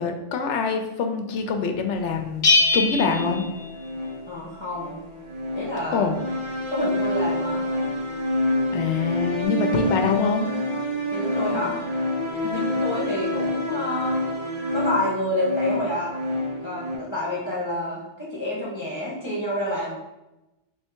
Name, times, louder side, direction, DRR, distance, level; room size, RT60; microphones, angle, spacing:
voice 1, 0.0-2.5 2.7-3.4 5.9-6.2 8.7-10.5 12.4-12.7, left 5 dB, 75° left, 5 dB, 0.9 m, -24 dB
Bell, 2.4-4.3, left 3 dB, 45° left, 0.8 m, -22 dB
sound 1, 3.0-17.0, left 1 dB, 25° right, 1.0 m, -28 dB
voice 2, 4.3-5.0 5.6-6.1 6.7-7.7 11.1-11.8 12.5-14.3 14.7-16.1 16.6-19.9, left 1 dB, 25° left, -6 dB, 1.2 m, -28 dB
3.3 x 3.2 x 4.5 m, 0.98 s
omnidirectional pair, 1.2 m